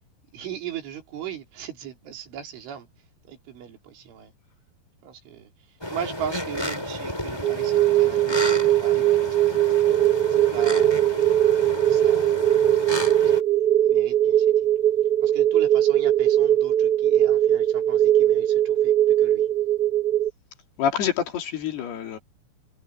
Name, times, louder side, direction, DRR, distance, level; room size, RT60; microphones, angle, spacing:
voice 1, 0.3-2.9 3.3-4.3 5.0-5.5 5.9-9.6 10.3-11.1 11.4-13.3 13.8-14.5 15.2-18.9 19.2-19.5, right 9 dB, 90° right, 6.1 m, -39 dB
sound 1, 5.8-13.4, left 1 dB, 5° left, 6.5 m, -32 dB
sound 2, 7.4-20.3, right 12 dB, 40° right, 0.7 m, -20 dB
voice 2, 20.8-22.2, left 8 dB, 60° left, 4.5 m, -26 dB
omnidirectional pair, 5.4 m